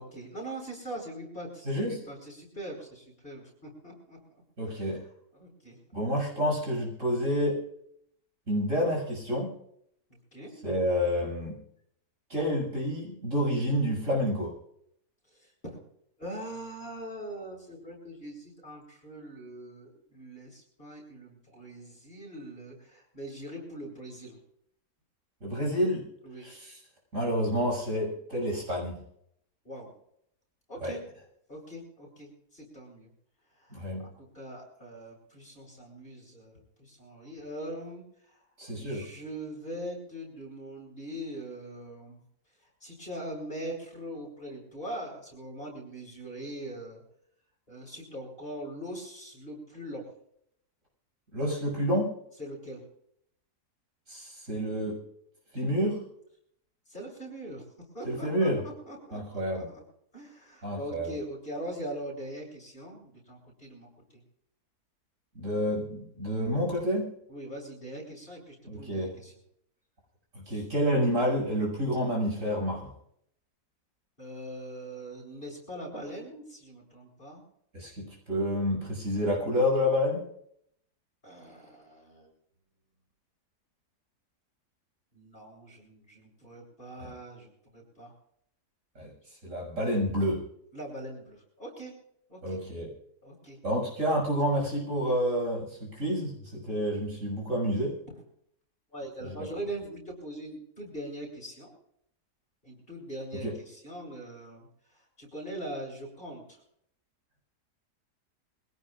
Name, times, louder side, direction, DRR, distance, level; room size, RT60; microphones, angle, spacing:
voice 1, 0.0-5.0 5.3-5.8 10.3-10.5 15.4-15.8 16.2-24.4 26.2-26.5 29.6-29.9 30.7-31.0 31.5-33.1 33.6-38.4 38.8-42.2 42.8-47.0 47.7-50.1 52.4-52.8 56.9-57.6 57.9-59.8 60.1-64.2 67.3-69.3 70.5-70.6 74.2-77.4 81.2-82.3 85.1-88.1 90.7-91.9 92.3-92.6 93.2-93.6 98.9-101.8 102.6-104.7 104.9-106.6, right 1 dB, 35° left, -1 dB, 8.4 m, -42 dB
voice 2, 1.6-2.0 4.6-5.0 5.9-7.6 8.5-9.5 10.6-11.6 12.3-14.5 25.4-26.0 26.4-26.7 27.1-29.0 30.8-30.9 33.7-34.1 38.6-39.1 51.3-52.1 54.1-55.0 55.5-56.0 58.0-58.6 59.1-59.7 60.6-61.1 65.3-67.1 68.7-69.1 70.3-72.9 77.7-80.2 87.0-87.1 88.9-89.1 89.4-90.4 92.4-92.9 93.6-97.9 99.2-99.5 103.4-103.5, equal, 50° right, -1 dB, 7.0 m, -29 dB
25.5 x 17.0 x 2.5 m, 0.70 s
omnidirectional pair, 1.7 m